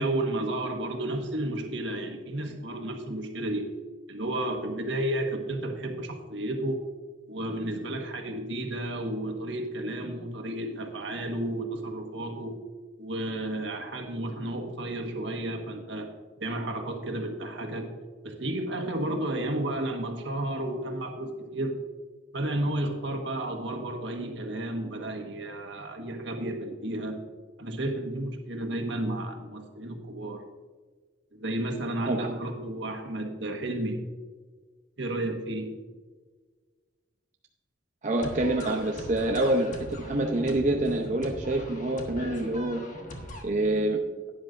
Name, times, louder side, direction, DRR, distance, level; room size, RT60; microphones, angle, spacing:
voice 1, 0.0-3.7 4.1-6.8 7.3-12.6 13.0-16.1 16.4-17.9 18.2-21.8 22.3-27.2 27.6-30.4 31.3-34.0 35.0-35.7, right 1 dB, 75° right, 3 dB, 1.5 m, -32 dB
voice 2, 32.0-32.3 38.0-42.8 43.4-44.0, right 1 dB, 40° right, 1 dB, 0.7 m, -27 dB
sound 1, 38.2-43.4, left 1 dB, 40° left, 1.5 m, -40 dB
12.0 x 10.5 x 2.6 m, 1.4 s
head